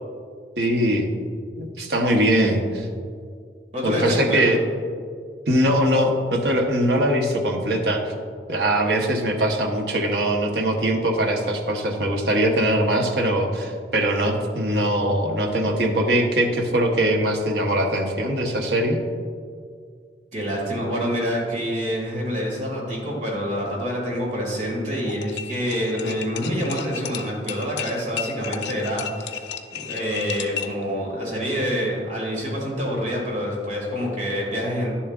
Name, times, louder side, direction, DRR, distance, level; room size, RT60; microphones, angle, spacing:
voice 1, 0.6-1.1 1.6-2.9 3.8-4.6 5.5-8.0 8.5-19.0, right 1 dB, 70° right, 2 dB, 1.0 m, -21 dB
voice 2, 3.7-4.4 20.3-34.9, equal, 45° right, -3 dB, 2.1 m, -27 dB
sound 1, 25.0-30.8, left 8 dB, 80° left, 0.5 m, -33 dB
10.5 x 7.1 x 2.4 m, 2.1 s
head